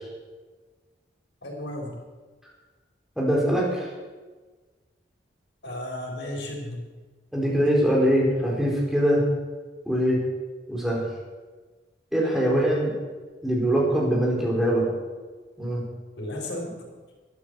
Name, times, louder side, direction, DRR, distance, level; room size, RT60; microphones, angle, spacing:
voice 1, 1.4-2.0 5.6-6.9 16.2-16.8, left 1 dB, 75° left, 0 dB, 4.3 m, -34 dB
voice 2, 3.2-3.9 7.3-9.2 9.9-10.2 10.7-11.0 12.1-12.9 13.4-14.9 15.6-15.8, equal, ahead, -4 dB, 4.1 m, -22 dB
12.5 x 9.9 x 8.1 m, 1.3 s
head